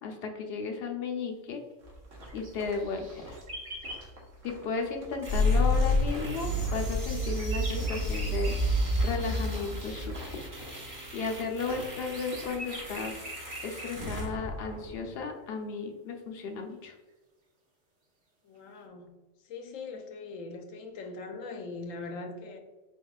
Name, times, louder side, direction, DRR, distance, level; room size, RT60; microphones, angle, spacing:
voice 1, 0.0-1.6 2.3-3.4 4.4-8.6 9.0-10.4 11.1-13.3 13.6-16.9, left 4 dB, 55° left, 3 dB, 0.9 m, -34 dB
sound 1, 1.8-13.1, right 1 dB, 75° right, 1.4 m, -49 dB
sound 2, 2.2-4.1 6.3-8.7 9.9-10.0 11.4-13.9, right 1 dB, 55° right, 1.2 m, -43 dB
sound 3, 5.2-15.2, left 1 dB, 15° right, 0.9 m, -30 dB
voice 2, 18.4-19.1 19.4-22.6, left 3 dB, 75° left, 4 dB, 1.1 m, -41 dB
4.7 x 3.6 x 2.3 m, 1.2 s
omnidirectional pair, 1.4 m